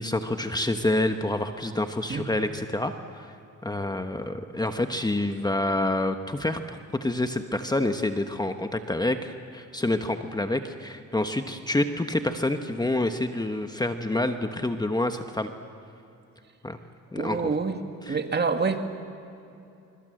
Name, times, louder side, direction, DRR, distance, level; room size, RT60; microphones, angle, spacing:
voice 1, 0.0-3.3 3.6-6.6 7.0-15.5 16.6-16.8 17.1-17.4 18.1-18.2, left 1 dB, 15° left, 7 dB, 1.2 m, -27 dB
voice 2, 17.1-17.8 18.1-18.9, right 4 dB, 35° right, 6 dB, 2.1 m, -26 dB
25.0 x 24.0 x 7.8 m, 2.7 s
cardioid pair, 90°, 30 cm